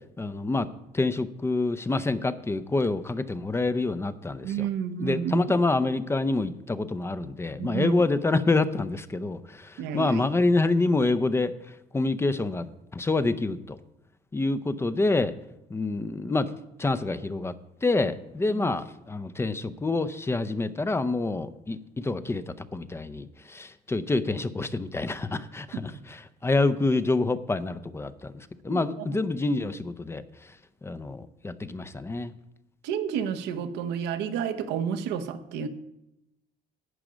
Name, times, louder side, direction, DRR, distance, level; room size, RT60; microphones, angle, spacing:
voice 1, 0.2-0.7 0.9-4.7 5.0-11.5 11.9-13.8 14.3-15.3 15.7-16.5 16.8-17.5 17.8-30.2 30.8-32.3, left 3 dB, 15° left, 13 dB, 0.6 m, -27 dB
voice 2, 4.4-5.5 7.6-8.0 9.8-10.2 18.5-18.7 28.7-28.8 32.8-35.7, right 8 dB, 90° right, 9 dB, 1.0 m, -30 dB
11.0 x 8.8 x 5.1 m, 0.87 s
cardioid pair, 110°, 17 cm